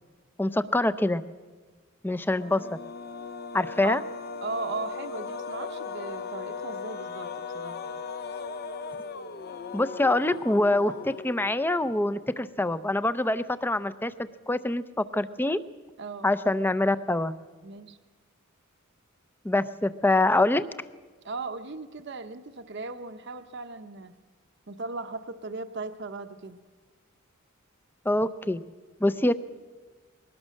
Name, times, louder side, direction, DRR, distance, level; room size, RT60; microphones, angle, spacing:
voice 1, 0.4-1.2 2.0-2.8 3.5-4.0 9.7-14.1 14.5-15.6 16.2-17.3 19.4-20.6 28.1-28.6 29.0-29.3, left 2 dB, 10° left, 14 dB, 0.5 m, -25 dB
sound 1, 2.3-11.7, left 5 dB, 45° left, 0.7 m, -38 dB
voice 2, 4.4-8.0 16.0-16.3 17.6-18.0 21.2-24.1 24.7-26.6, right 3 dB, 55° right, 8 dB, 0.8 m, -37 dB
21.5 x 18.5 x 6.4 m, 1.4 s
head